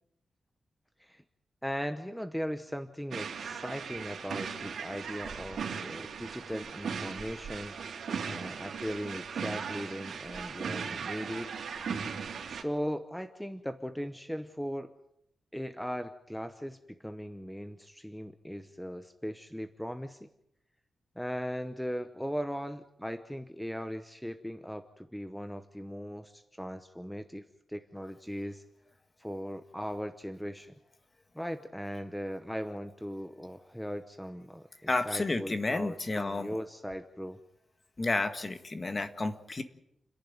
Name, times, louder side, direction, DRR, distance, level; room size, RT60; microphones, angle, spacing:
voice 1, 1.6-7.8 8.3-11.5 12.5-14.9 15.5-20.3 21.2-28.6 29.2-30.7 31.3-37.4, equal, ahead, 9 dB, 0.9 m, -38 dB
sound 1, 3.1-12.6, right 6 dB, 75° right, 3.1 m, -38 dB
voice 2, 34.9-36.5 38.0-39.6, left 2 dB, 25° left, 9 dB, 1.6 m, -31 dB
29.5 x 11.0 x 9.4 m, 0.79 s
wide cardioid pair, 160°, 0 cm